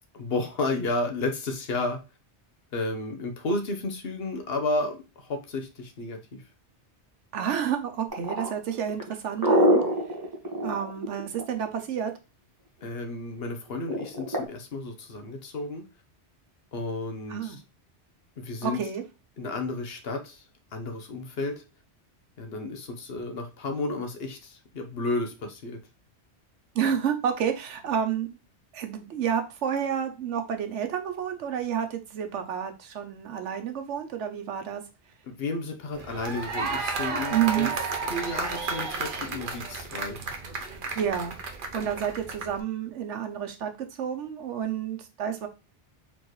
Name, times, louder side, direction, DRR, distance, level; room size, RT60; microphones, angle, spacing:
voice 1, 0.1-2.0 2.7-6.4 12.8-15.9 16.7-17.6 18.4-18.9 19.4-20.4 20.7-21.6 22.4-25.8 35.2-37.7 38.1-40.2, left 2 dB, 60° left, 5 dB, 1.0 m, -32 dB
voice 2, 7.3-9.8 10.6-12.1 17.3-17.6 18.6-19.0 26.7-28.4 28.7-34.8 37.3-37.7 41.0-41.4 41.7-43.7 44.0-45.5, right 8 dB, 85° right, 7 dB, 1.1 m, -29 dB
sound 1, 8.1-11.8 13.9-14.5, equal, 20° right, 1.3 m, -24 dB
sound 2, 35.9-42.6, right 4 dB, 55° right, 0.8 m, -32 dB
4.4 x 3.6 x 3.0 m, 0.29 s
omnidirectional pair, 1.2 m